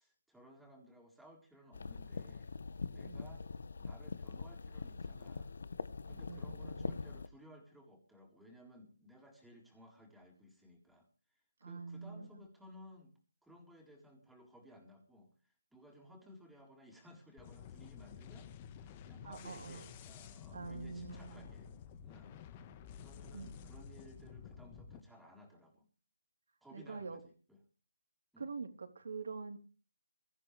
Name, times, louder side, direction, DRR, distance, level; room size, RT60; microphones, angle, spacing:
voice 1, 0.0-2.5 2.9-3.5 3.8-5.5 6.0-13.1 13.4-18.5 18.8-21.7 22.0-25.9 26.6-27.6 28.3-28.5, left 1 dB, ahead, -1 dB, 4.0 m, -58 dB
sound 1, 1.7-7.3, left 4 dB, 65° left, 0.9 m, -43 dB
voice 2, 3.0-3.4 6.0-7.0 11.6-12.4 19.2-19.9 20.5-21.5 23.3-23.5 26.7-27.2 28.4-29.6, right 4 dB, 70° right, 5 dB, 3.4 m, -45 dB
sound 2, 17.4-25.0, left 7 dB, 25° left, 1.3 m, -52 dB
23.0 x 14.0 x 3.3 m, 0.39 s
hypercardioid pair, 160°, 0 cm